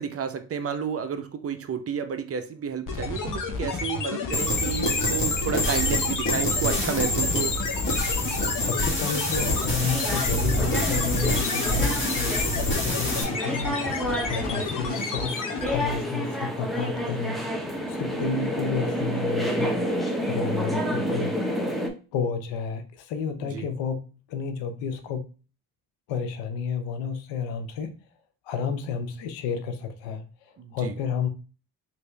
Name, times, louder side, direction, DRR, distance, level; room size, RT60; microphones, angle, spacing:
voice 1, 0.0-7.5 15.0-15.1 23.5-23.6 30.6-30.9, right 7 dB, 35° right, 0.6 m, -31 dB
sound 1, 2.9-16.0, left 4 dB, 45° left, 0.9 m, -31 dB
sound 2, 4.3-13.2, left 1 dB, 25° left, 1.6 m, -26 dB
voice 2, 8.5-14.0 14.2-17.4 17.9-19.9 20.3-21.3 22.1-25.3 26.1-28.0 28.4-31.3, left 5 dB, 80° left, 0.7 m, -31 dB
sound 3, 9.3-21.9, equal, ahead, 0.8 m, -30 dB
3.3 x 2.6 x 3.2 m
supercardioid pair, 60°, 44 cm